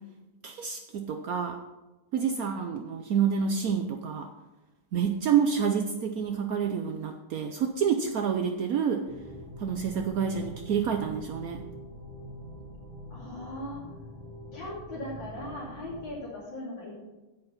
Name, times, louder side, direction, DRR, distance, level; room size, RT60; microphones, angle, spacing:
voice 1, 0.4-1.6 2.1-4.3 4.9-9.0 9.6-11.6, right 7 dB, 75° right, 5 dB, 0.8 m, -28 dB
sound 1, 9.0-16.1, equal, 20° right, 1.7 m, -44 dB
voice 2, 13.1-13.8 14.5-17.0, left 1 dB, 60° left, -8 dB, 3.4 m, -39 dB
9.1 x 8.0 x 5.7 m, 1.1 s
omnidirectional pair, 2.3 m